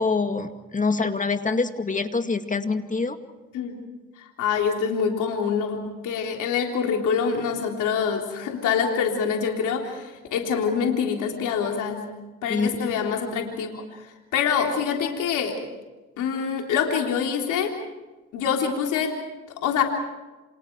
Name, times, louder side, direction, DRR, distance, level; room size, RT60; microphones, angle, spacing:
voice 1, 0.0-3.2 12.5-13.0, left 4 dB, 25° left, 7 dB, 2.2 m, -25 dB
voice 2, 4.2-12.1 12.4-13.8 14.3-15.5 16.2-17.7 18.3-19.2 19.6-19.8, left 6 dB, 85° left, 2 dB, 3.6 m, -25 dB
29.0 x 27.5 x 4.7 m, 1.2 s
cardioid pair, 90°, 30 cm